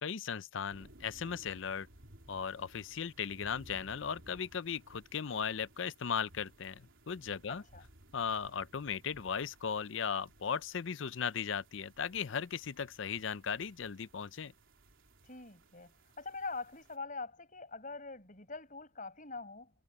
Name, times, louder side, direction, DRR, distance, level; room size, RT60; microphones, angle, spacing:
voice 1, 0.0-1.9 2.3-7.6 8.1-14.5, left 7 dB, 65° left, 0.5 m, -37 dB
sound 1, 0.7-17.0, right 1 dB, 70° right, 3.6 m, -60 dB
voice 2, 7.5-7.8 15.2-19.7, left 3 dB, 40° left, 7.7 m, -44 dB
head